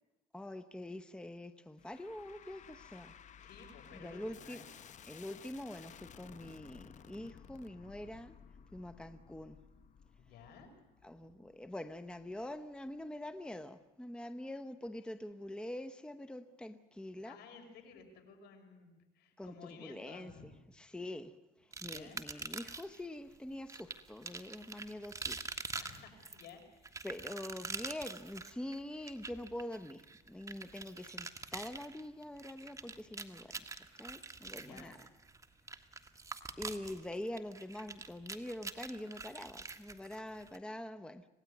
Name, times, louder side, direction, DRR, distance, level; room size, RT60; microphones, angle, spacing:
voice 1, 0.3-3.1 3.9-4.6 5.1-8.4 8.7-9.6 11.0-17.4 19.4-20.5 20.8-21.3 21.8-25.4 27.0-33.6 34.0-35.0 36.6-41.3, left 1 dB, 5° left, 0.9 m, -45 dB
sound 1, 1.8-13.1, left 8 dB, 45° left, 0.9 m, -57 dB
voice 2, 3.4-5.2 10.2-10.7 17.2-20.5 21.8-22.2 25.8-27.0 34.5-35.0, left 5 dB, 75° left, 5.3 m, -55 dB
sound 2, 21.7-23.0 23.7-40.6, right 3 dB, 20° right, 1.6 m, -45 dB
26.5 x 18.0 x 9.5 m
cardioid pair, 110°, 17 cm